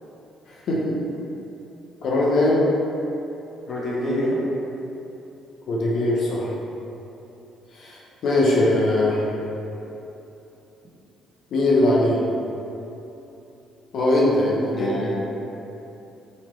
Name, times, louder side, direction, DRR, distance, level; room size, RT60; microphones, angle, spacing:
voice 1, 0.7-1.0 2.0-2.6 5.7-6.5 7.7-9.3 11.5-12.2 13.9-15.1, left 1 dB, 65° left, -4 dB, 0.7 m, -21 dB
voice 2, 3.7-4.4 14.7-15.2, equal, 40° left, -5 dB, 1.0 m, -26 dB
4.0 x 3.1 x 4.3 m, 2.9 s
supercardioid pair, 75°, 0 cm